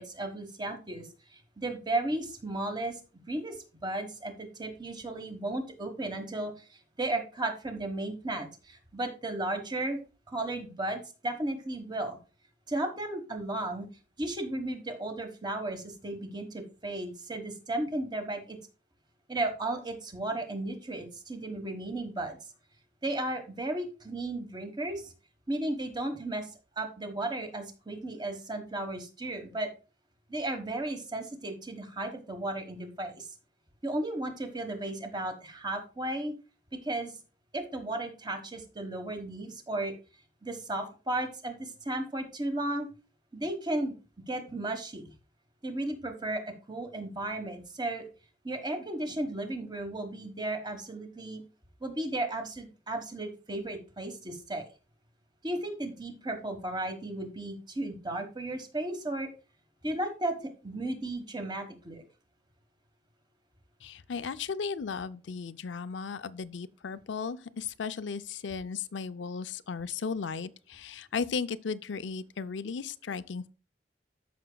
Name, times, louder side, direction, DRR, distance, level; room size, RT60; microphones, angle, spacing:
voice 1, 0.0-3.0 3.3-10.0 10.3-12.2 12.7-13.9 14.2-18.6 19.3-22.4 23.0-25.1 25.5-26.5 26.8-29.7 30.3-33.3 33.8-36.3 36.8-37.1 37.5-39.9 40.4-42.9 43.3-43.9 44.3-45.0 45.6-48.1 48.4-51.4 51.8-54.6 55.4-59.3 59.8-60.4 60.6-62.0, right 2 dB, 25° right, 1.3 m, -34 dB
voice 2, 63.8-73.5, left 5 dB, 90° left, 0.5 m, -35 dB
13.5 x 6.0 x 2.3 m
head